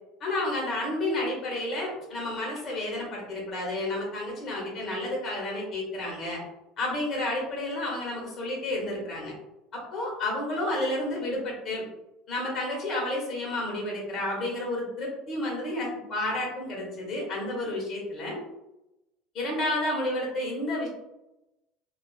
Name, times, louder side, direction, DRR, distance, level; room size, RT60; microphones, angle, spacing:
voice 1, 0.2-6.4 6.8-9.3 9.7-11.8 12.3-18.4 19.3-20.9, left 1 dB, 45° left, -2 dB, 1.2 m, -31 dB
2.4 x 2.4 x 2.4 m, 0.93 s
hypercardioid pair, 80°, 0 cm